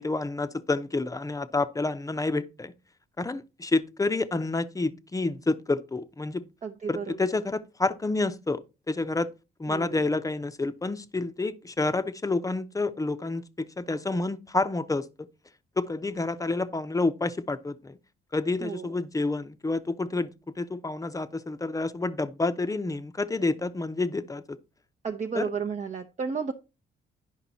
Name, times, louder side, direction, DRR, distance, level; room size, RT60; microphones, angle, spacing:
voice 1, 0.0-2.7 3.2-6.5 6.9-8.6 8.9-9.3 9.6-15.3 15.8-18.0 18.3-24.6 25.4-25.5, left 3 dB, 15° left, 0.7 m, -29 dB
voice 2, 6.6-7.3 9.7-10.0 18.6-18.9 25.0-26.5, right 5 dB, 35° right, 0.8 m, -33 dB
10.0 x 5.3 x 4.1 m
cardioid pair, 90°, 20 cm